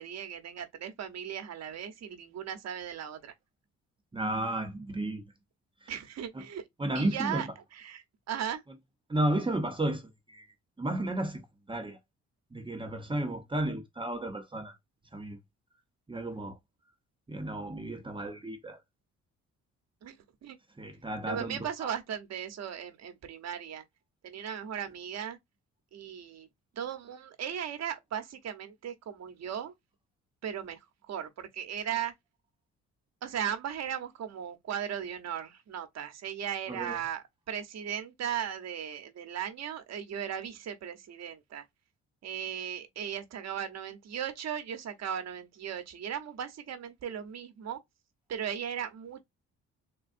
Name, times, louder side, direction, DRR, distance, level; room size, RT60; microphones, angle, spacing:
voice 1, 0.0-3.3 5.9-6.7 6.9-8.6 20.0-20.2 20.4-20.6 21.2-23.8 24.2-25.4 25.9-26.5 26.8-29.7 30.4-30.8 31.1-32.1 33.2-41.6 42.2-47.8 48.3-49.2, right 9 dB, 60° right, 1.0 m, -37 dB
voice 2, 4.1-5.2 6.8-7.4 9.1-10.5 10.8-11.4 11.7-12.0 12.5-14.8 15.1-15.4 16.1-16.6 17.3-18.8 20.8-21.9 36.7-37.0, right 1 dB, 15° right, 0.8 m, -33 dB
3.7 x 2.2 x 2.5 m
cardioid pair, 90°, 30 cm